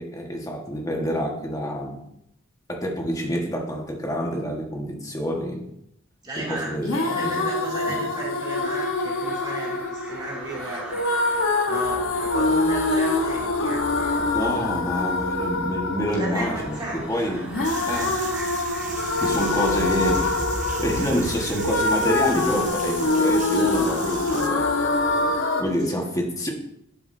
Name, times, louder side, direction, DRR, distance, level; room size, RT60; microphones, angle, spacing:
voice 1, 0.0-2.0 2.7-5.6 6.4-7.4 7.9-8.0 14.3-17.5 17.9-18.3 19.2-20.4 20.8-24.7 25.6-26.5, equal, 15° left, 1 dB, 1.4 m, -27 dB
voice 2, 6.2-11.0 11.6-14.3 16.2-17.3 19.7-19.8 25.8-26.0, right 1 dB, 20° right, -5 dB, 2.7 m, -35 dB
sound 1, 6.8-25.6, left 2 dB, 75° left, 1.1 m, -25 dB
sound 2, 8.3-25.4, right 1 dB, 5° right, 1.9 m, -38 dB
sound 3, 17.6-24.5, right 7 dB, 40° right, 0.9 m, -38 dB
11.5 x 7.0 x 2.7 m, 0.77 s
head